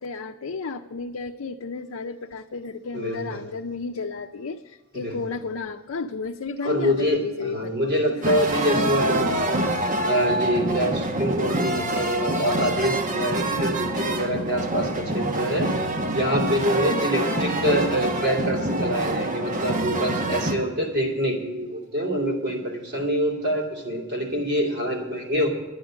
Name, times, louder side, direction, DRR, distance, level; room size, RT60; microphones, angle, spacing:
voice 1, 0.0-8.6 9.6-9.7 16.9-17.1, left 4 dB, 80° left, 2 dB, 0.6 m, -33 dB
voice 2, 2.9-3.4 5.0-5.2 6.6-25.5, equal, 55° right, -1 dB, 2.9 m, -25 dB
sound 1, 8.2-20.5, right 1 dB, 40° right, 1.0 m, -26 dB
10.5 x 10.5 x 6.2 m, 1.3 s
head